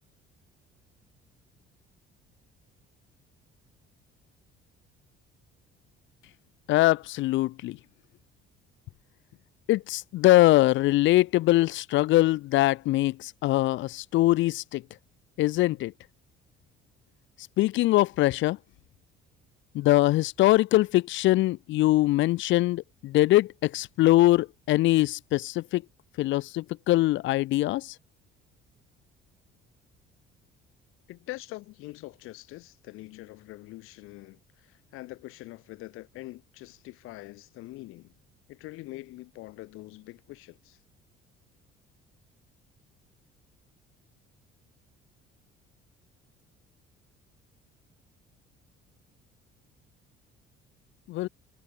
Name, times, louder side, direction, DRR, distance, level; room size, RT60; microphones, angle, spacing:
voice 1, 6.7-7.8 9.7-14.8 15.4-15.9 17.6-18.6 19.7-25.8 26.2-27.9 51.1-51.3, left 17 dB, 65° left, 0.7 m, -22 dB
voice 2, 31.1-38.1 38.5-40.8, left 19 dB, 85° left, 2.6 m, -44 dB
cardioid pair, 145°, 21 cm